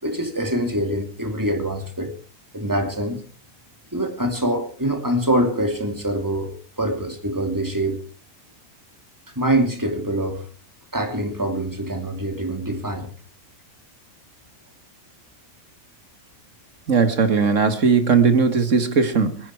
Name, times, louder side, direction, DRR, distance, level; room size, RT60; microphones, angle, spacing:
voice 1, 0.0-2.1 2.5-3.2 3.9-8.0 9.4-10.4 10.9-13.1, right 1 dB, 5° right, 5 dB, 2.2 m, -24 dB
voice 2, 16.9-19.4, right 5 dB, 35° right, 9 dB, 1.3 m, -18 dB
24.0 x 10.0 x 4.6 m, 0.40 s
omnidirectional pair, 3.4 m